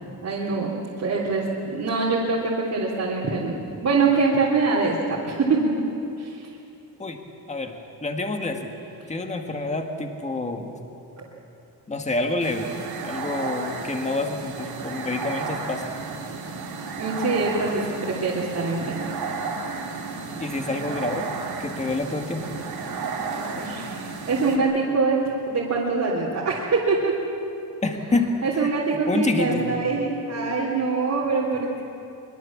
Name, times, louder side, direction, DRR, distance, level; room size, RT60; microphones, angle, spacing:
voice 1, 0.2-0.7 1.0-5.7 6.2-6.5 11.2-11.3 17.0-19.1 23.3-25.2 25.5-27.1 28.4-31.8, right 4 dB, 45° right, -6 dB, 3.3 m, -24 dB
voice 2, 8.0-8.7 9.1-10.7 11.9-12.7 13.0-15.8 20.4-21.3 21.6-22.5 27.8-28.7 29.1-29.8, left 2 dB, 20° left, 4 dB, 1.7 m, -27 dB
sound 1, 12.4-24.6, right 4 dB, 75° right, 3.1 m, -33 dB
23.5 x 22.5 x 7.4 m, 2.8 s
wide cardioid pair, 150°, 38 cm